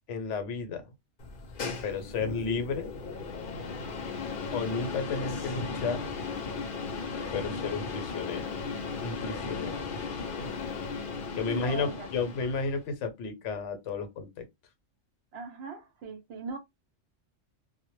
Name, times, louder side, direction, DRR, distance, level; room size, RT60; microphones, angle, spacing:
voice 1, 0.1-0.8 1.8-2.9 4.5-6.1 7.3-8.5 9.0-9.8 11.3-14.4, left 4 dB, 75° left, 0.9 m, -32 dB
sound 1, 1.2-12.8, left 4 dB, 55° left, 0.7 m, -36 dB
voice 2, 11.5-12.1 15.3-16.6, right 5 dB, 65° right, 0.8 m, -39 dB
2.1 x 2.0 x 3.0 m
omnidirectional pair, 1.3 m